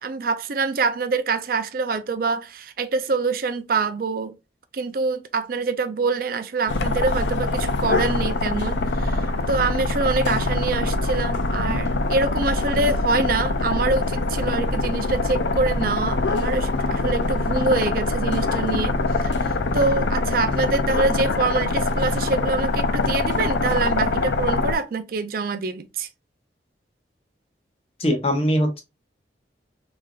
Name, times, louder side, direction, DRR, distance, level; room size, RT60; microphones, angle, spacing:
voice 1, 0.0-4.3 4.7-19.0 19.2-26.1, right 4 dB, 55° right, 0.4 m, -25 dB
sound 1, 6.7-24.8, left 3 dB, 80° left, 0.5 m, -24 dB
voice 2, 28.0-28.8, equal, 35° left, 0.9 m, -21 dB
3.7 x 3.3 x 2.4 m
head